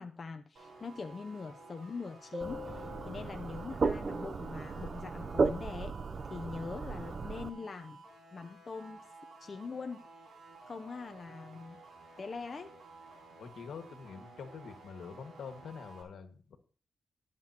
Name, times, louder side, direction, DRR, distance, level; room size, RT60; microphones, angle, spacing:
voice 1, 0.0-6.0 6.2-8.0 8.3-9.0 9.4-10.2 10.7-11.8 12.2-12.7, left 4 dB, 35° left, 6 dB, 0.6 m, -43 dB
sound 1, 0.5-16.0, right 3 dB, 75° right, 4.7 m, -54 dB
sound 2, 2.3-5.6, left 5 dB, 25° right, 7.2 m, -48 dB
sound 3, 2.4-7.5, right 4 dB, 40° right, 0.6 m, -35 dB
voice 2, 13.4-16.6, left 6 dB, 75° left, 6 dB, 1.7 m, -46 dB
22.5 x 7.6 x 2.9 m, 0.40 s
wide cardioid pair, 125°, 0 cm